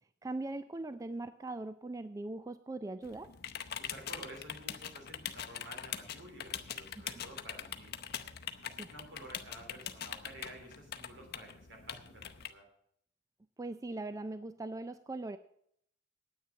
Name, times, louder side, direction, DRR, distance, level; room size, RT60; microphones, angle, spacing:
voice 1, 0.2-3.3 7.0-7.1 8.8-8.9 13.6-15.4, right 2 dB, 15° right, 12 dB, 0.3 m, -40 dB
sound 1, 3.0-12.5, left 9 dB, 55° left, 0.7 m, -43 dB
voice 2, 3.8-8.0 8.6-12.7, right 1 dB, 70° right, 2 dB, 3.3 m, -51 dB
9.5 x 9.0 x 6.9 m, 0.69 s
head